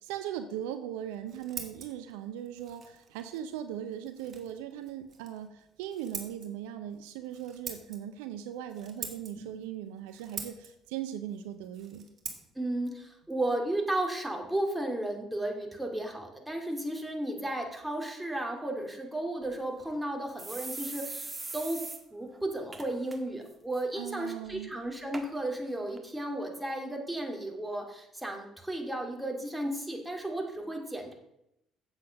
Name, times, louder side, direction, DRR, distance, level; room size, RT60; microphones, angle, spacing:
voice 1, 0.0-12.1 23.9-24.7, right 10 dB, 75° right, 9 dB, 0.6 m, -39 dB
Scissors, 1.0-14.5, right 6 dB, 45° right, 1.9 m, -47 dB
voice 2, 12.6-21.8 22.1-31.1, right 1 dB, 5° right, 1 dB, 2.5 m, -34 dB
sound 1, 19.4-19.5 19.9-20.0 20.4-22.0 22.3-22.4 22.7-23.2 23.5-23.8 24.5-24.6 25.1-25.3 26.0-26.1, right 3 dB, 25° right, 1.5 m, -40 dB
8.1 x 7.5 x 5.3 m, 0.82 s
hypercardioid pair, 55°, 0 cm